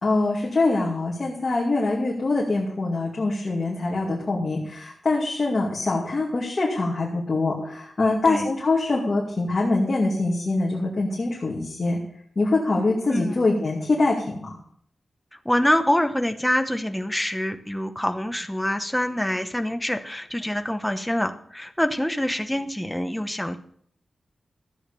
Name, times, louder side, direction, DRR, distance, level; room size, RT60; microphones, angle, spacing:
voice 1, 0.0-12.0 12.4-14.5, left 2 dB, 35° left, -3 dB, 2.4 m, -24 dB
voice 2, 8.0-8.5 13.1-13.4 15.3-23.6, left 1 dB, 5° left, 6 dB, 1.0 m, -25 dB
14.0 x 8.2 x 6.8 m, 0.64 s
wide cardioid pair, 170°, 0 cm